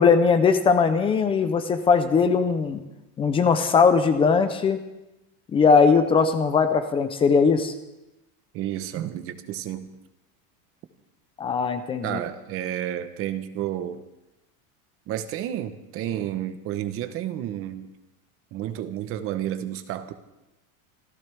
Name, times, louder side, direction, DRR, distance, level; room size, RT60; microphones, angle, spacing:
voice 1, 0.0-2.8 3.2-4.8 5.5-7.7 11.4-12.2, left 5 dB, 15° left, 10 dB, 0.5 m, -20 dB
voice 2, 8.5-9.9 12.0-14.0 15.1-17.9 18.5-20.1, right 11 dB, 30° right, 10 dB, 0.9 m, -31 dB
26.5 x 14.0 x 3.4 m, 0.97 s
cardioid pair, 170°, 42 cm